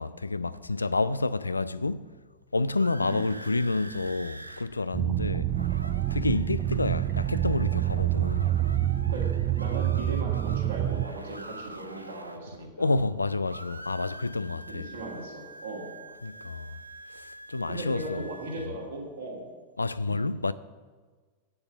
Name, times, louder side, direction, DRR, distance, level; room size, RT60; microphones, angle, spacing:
voice 1, 0.0-2.1 2.5-5.5 6.1-8.6 12.8-14.9 16.2-16.7 17.1-18.3 18.6-18.7 19.8-20.5, left 3 dB, 80° left, 0.3 m, -29 dB
sound 1, 2.4-4.7 4.9-5.0 5.3-13.2 13.4-18.7, right 2 dB, 85° right, 0.6 m, -45 dB
sound 2, 4.9-11.0, right 12 dB, 35° right, 0.4 m, -27 dB
voice 2, 9.6-12.9 14.7-15.9 17.7-19.5, right 2 dB, 65° right, 2.8 m, -38 dB
8.4 x 6.8 x 8.1 m
figure-of-eight pair, 90°, 0 cm